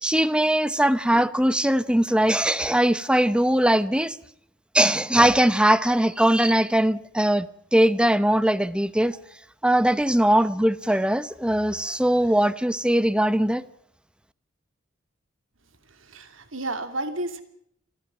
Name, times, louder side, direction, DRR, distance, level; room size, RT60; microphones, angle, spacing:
voice 1, 0.0-4.2 4.7-7.5 7.7-9.2 9.6-13.6, right 1 dB, 5° right, 0.8 m, -20 dB
voice 2, 16.0-17.4, right 2 dB, 75° right, 2.7 m, -31 dB
25.5 x 15.0 x 8.9 m
head